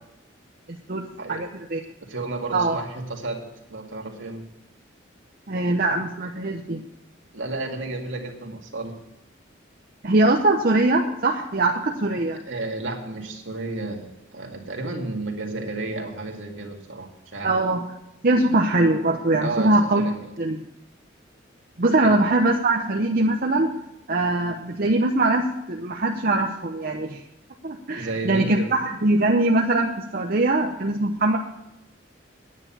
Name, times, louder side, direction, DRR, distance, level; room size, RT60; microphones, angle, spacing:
voice 1, 0.9-1.8 2.5-2.8 5.5-6.8 10.0-12.4 17.4-17.8 18.2-20.1 20.4-20.6 21.8-23.8 24.1-27.2 27.6-31.4, right 2 dB, 50° right, 1 dB, 0.8 m, -22 dB
voice 2, 2.1-4.4 7.3-8.9 12.5-17.5 19.4-20.3 22.0-22.1 28.0-28.7, right 2 dB, 70° right, 1 dB, 2.1 m, -32 dB
9.6 x 9.0 x 7.3 m, 0.87 s
head